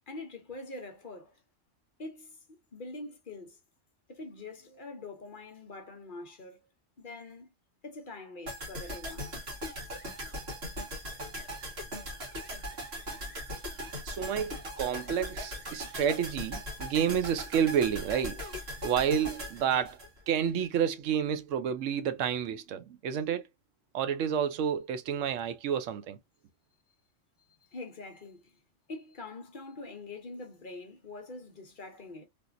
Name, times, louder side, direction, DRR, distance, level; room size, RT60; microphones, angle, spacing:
voice 1, 0.0-1.4 2.0-2.4 2.7-3.6 4.1-6.7 7.0-7.5 7.8-9.3 27.4-28.6 28.9-32.3, left 2 dB, 45° left, 0.9 m, -44 dB
sound 1, 8.5-20.6 20.9-21.0, equal, 55° right, 1.8 m, -39 dB
voice 2, 14.0-18.4 18.8-20.0 20.3-23.5 23.9-26.2, right 8 dB, 85° right, 1.0 m, -30 dB
3.4 x 2.6 x 2.5 m
omnidirectional pair, 1.3 m